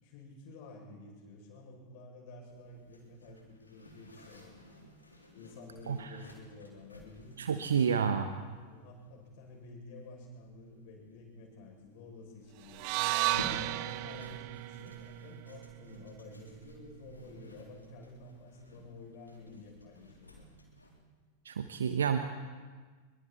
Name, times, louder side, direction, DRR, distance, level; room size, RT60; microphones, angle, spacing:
voice 1, 0.0-4.6 5.3-12.8 13.3-20.5, left 2 dB, 45° left, 0 dB, 7.5 m, -51 dB
Zipper (clothing), 2.4-21.0, equal, 80° left, 3.8 m, -53 dB
voice 2, 7.4-8.3 21.4-22.2, right 7 dB, 65° right, 8 dB, 1.1 m, -29 dB
sound 1, 12.7-16.9, right 18 dB, 45° right, 0.8 m, -35 dB
27.0 x 23.0 x 4.5 m, 1.5 s
figure-of-eight pair, 90°, 0 cm